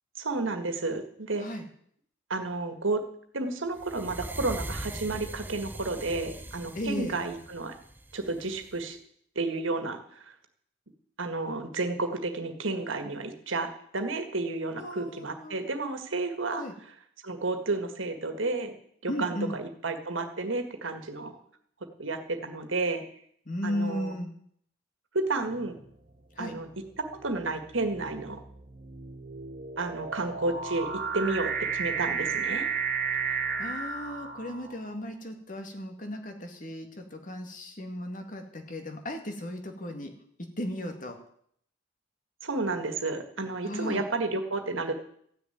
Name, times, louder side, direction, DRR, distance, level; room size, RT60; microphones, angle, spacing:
voice 1, 0.2-1.5 2.3-3.0 3.3-7.7 8.1-9.0 9.4-10.3 11.2-16.6 17.2-18.7 19.0-21.4 22.0-23.0 23.6-24.1 25.1-25.7 26.4-26.7 27.0-28.4 29.8-32.7 42.4-44.9, right 3 dB, 80° right, 7 dB, 1.8 m, -31 dB
sound 1, 3.8-8.8, right 1 dB, 10° right, 0.6 m, -41 dB
voice 2, 6.7-7.2 14.8-15.6 16.6-16.8 19.1-19.6 23.5-24.3 26.4-26.5 33.2-40.1 40.6-41.2 43.6-44.0, left 1 dB, 40° left, 5 dB, 1.9 m, -36 dB
sound 2, 25.5-25.9 26.7-34.9, right 6 dB, 45° right, 1.8 m, -33 dB
14.5 x 6.7 x 9.3 m, 0.66 s
head